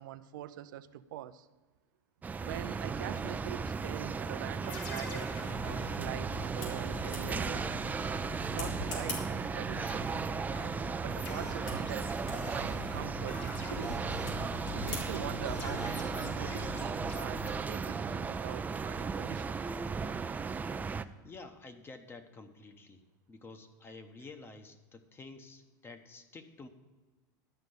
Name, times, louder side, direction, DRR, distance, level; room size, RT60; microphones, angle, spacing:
voice 1, 0.0-1.5 2.4-5.4 5.6-7.7 8.3-9.9 11.0-12.2 12.5-14.2 14.7-19.6, right 12 dB, 80° right, 12 dB, 0.5 m, -43 dB
sound 1, 2.2-21.0, right 5 dB, 15° right, 0.4 m, -36 dB
sound 2, 4.6-9.5 9.7-17.5, left 2 dB, 50° left, 2.5 m, -45 dB
sound 3, 4.9-17.6, left 1 dB, 80° left, 3.5 m, -44 dB
voice 2, 21.2-23.0 23.3-26.7, left 3 dB, 20° left, 8 dB, 1.1 m, -50 dB
12.0 x 5.2 x 8.0 m, 1.3 s
supercardioid pair, 110°, 10 cm